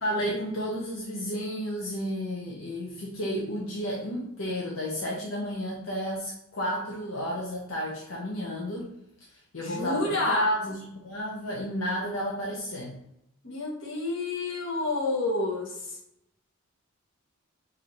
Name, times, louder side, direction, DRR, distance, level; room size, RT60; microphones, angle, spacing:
voice 1, 0.0-8.9 9.5-13.0, equal, 85° left, -3 dB, 0.8 m, -32 dB
voice 2, 9.6-10.5 13.4-16.0, left 2 dB, 65° left, -3 dB, 1.4 m, -29 dB
5.1 x 2.8 x 3.1 m, 0.80 s
head